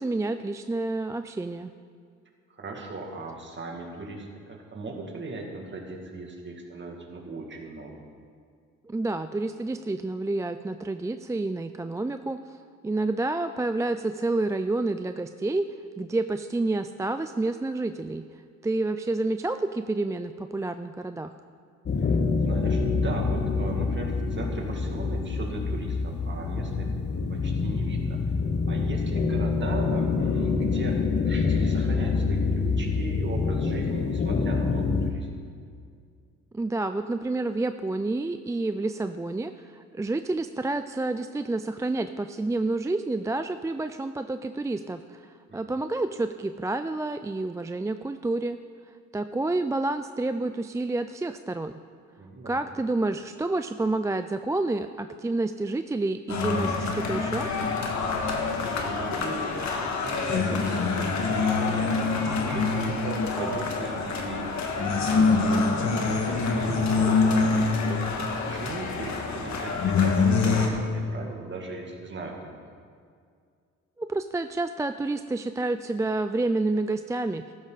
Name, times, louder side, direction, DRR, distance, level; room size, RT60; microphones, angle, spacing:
voice 1, 0.0-1.7 8.8-12.6 12.8-15.6 16.0-18.2 18.6-21.3 36.5-48.6 49.1-51.7 52.5-57.5 74.0-77.5, right 2 dB, 10° right, 9 dB, 0.3 m, -29 dB
voice 2, 2.5-8.0 22.4-26.9 27.3-28.2 28.7-31.0 31.2-35.3 45.5-45.6 52.2-52.6 58.2-62.1 62.4-64.5 65.1-65.6 66.0-68.0 68.5-72.6, right 3 dB, 40° right, 1 dB, 2.4 m, -38 dB
sound 1, 21.9-35.1, left 4 dB, 35° left, 1.0 m, -26 dB
sound 2, 56.3-70.7, left 4 dB, 65° left, 1.8 m, -25 dB
14.5 x 12.5 x 4.1 m, 2.2 s
cardioid pair, 90°, 30 cm